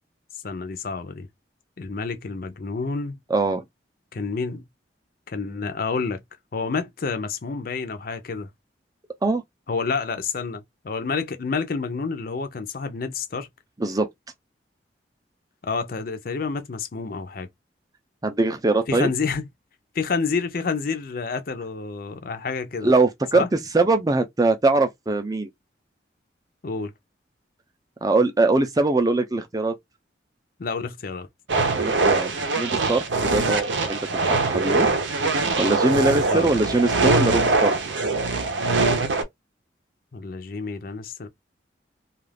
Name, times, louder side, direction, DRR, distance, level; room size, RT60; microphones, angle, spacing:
voice 1, 0.4-1.3 1.8-3.2 4.1-4.6 5.3-6.2 6.5-8.5 9.7-13.5 15.6-17.5 18.9-19.4 19.9-22.9 23.3-23.5 26.6-26.9 30.6-31.3 36.3-36.5 40.1-41.3, left 4 dB, 50° left, 0.5 m, -29 dB
voice 2, 3.3-3.6 9.2-9.4 13.8-14.1 18.2-19.1 22.8-25.5 28.0-29.8 31.8-35.3 35.6-37.7, right 2 dB, 20° right, 0.4 m, -22 dB
sound 1, 31.5-39.2, right 3 dB, 80° right, 0.7 m, -22 dB
2.4 x 2.3 x 3.3 m
head